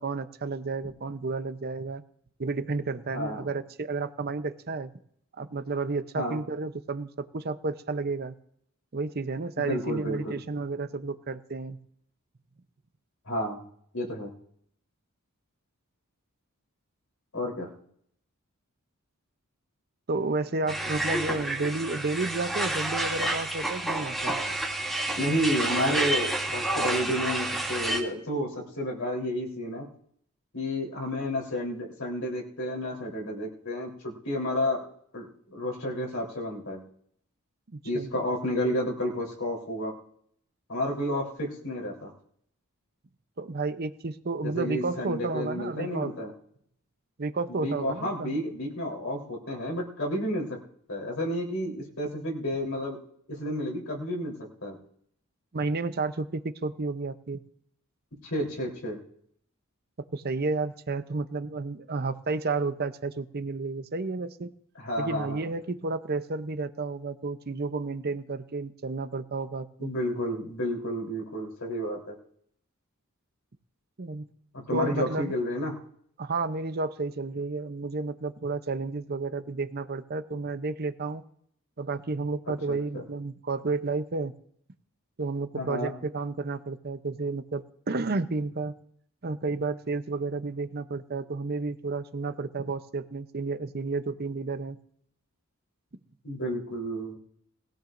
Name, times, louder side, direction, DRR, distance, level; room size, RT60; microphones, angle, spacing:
voice 1, 0.0-2.0 2.4-4.9 5.4-8.3 8.9-11.8 20.1-24.4 37.7-38.1 43.4-46.1 47.2-48.3 55.5-57.4 60.1-64.5 65.0-69.9 74.0-74.2 74.7-75.3 76.2-81.2 81.8-84.3 85.2-88.7 89.2-94.8, right 3 dB, 45° right, 11 dB, 0.7 m, -31 dB
voice 2, 3.1-3.5 6.1-6.4 9.6-10.4 13.3-13.6 13.9-14.3 17.3-17.7 25.1-29.9 30.5-34.9 35.1-36.8 37.8-39.9 40.7-42.1 44.4-46.3 47.5-50.6 50.9-53.0 53.3-54.4 54.6-54.8 58.2-59.0 64.8-65.5 69.8-72.1 74.5-75.8 82.7-83.0 85.5-85.9 96.2-97.2, equal, 70° left, -2 dB, 3.8 m, -31 dB
sound 1, 20.7-28.0, right 1 dB, ahead, 2.6 m, -29 dB
20.5 x 15.5 x 2.6 m, 0.67 s
head